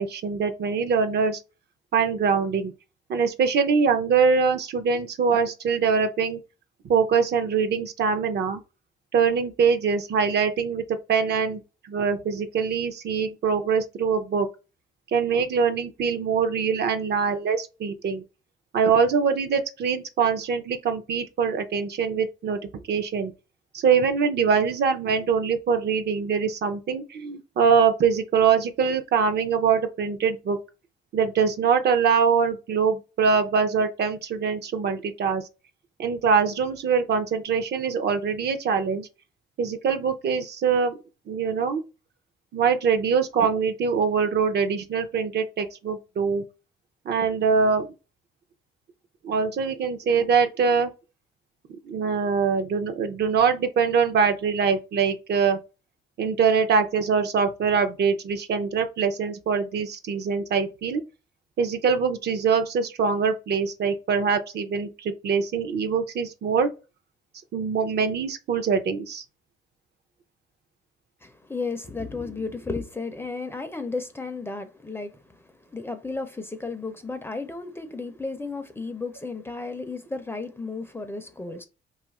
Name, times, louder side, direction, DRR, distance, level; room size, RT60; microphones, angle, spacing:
voice 1, 0.0-1.4 1.9-2.7 3.1-6.4 6.9-8.6 9.1-10.8 11.1-11.6 11.9-14.5 15.1-18.2 18.7-22.6 22.9-23.3 23.7-30.6 31.1-35.4 36.0-39.1 39.6-40.9 41.3-41.8 42.5-46.4 47.1-47.9 49.2-50.9 51.8-55.6 56.2-61.0 61.6-66.7 67.5-69.2, right 6 dB, 55° right, 0.6 m, -23 dB
voice 2, 71.2-75.1 75.7-81.6, left 3 dB, 10° left, 0.5 m, -33 dB
2.7 x 2.4 x 4.0 m
cardioid pair, 90°, 20 cm